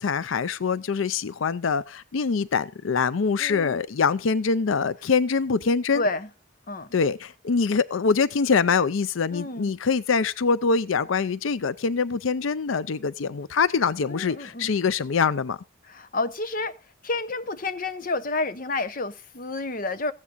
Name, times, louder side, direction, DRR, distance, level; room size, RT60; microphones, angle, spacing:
voice 1, 0.0-6.1 6.9-15.6, left 5 dB, 90° left, 0.5 m, -24 dB
voice 2, 3.4-3.8 5.9-6.3 6.7-6.9 9.3-9.7 14.1-14.7 15.9-16.8 17.0-20.1, left 2 dB, 45° left, 0.8 m, -30 dB
15.0 x 9.6 x 4.1 m
head